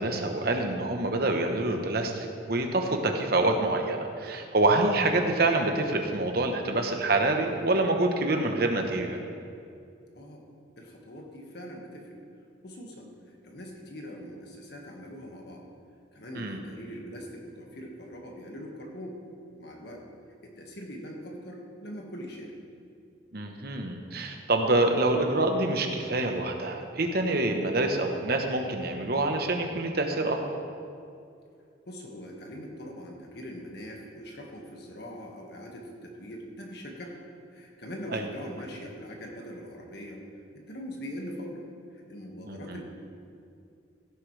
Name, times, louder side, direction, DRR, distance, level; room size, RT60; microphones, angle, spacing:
voice 1, 0.0-9.2 16.3-16.6 23.3-30.4 38.1-38.3 42.4-42.8, right 2 dB, 50° right, 4 dB, 1.1 m, -26 dB
voice 2, 10.8-12.2 12.6-13.1 13.4-15.6 16.1-19.2 19.5-20.0 20.4-22.5 31.9-37.2 37.5-40.2 40.7-41.6 42.1-42.8, equal, 55° left, 0 dB, 1.7 m, -42 dB
16.5 x 9.9 x 3.4 m, 2.4 s
head